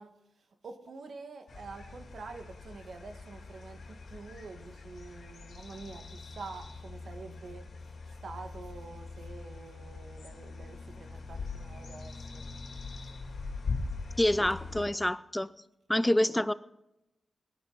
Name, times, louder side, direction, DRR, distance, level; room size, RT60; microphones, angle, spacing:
voice 1, 0.0-12.4, right 4 dB, 70° right, 1.6 m, -47 dB
sound 1, 1.5-14.9, left 4 dB, 70° left, 2.4 m, -42 dB
voice 2, 14.2-15.5 15.9-16.5, left 1 dB, 10° left, 0.6 m, -27 dB
18.0 x 12.0 x 4.0 m
cardioid pair, 75°, 0 cm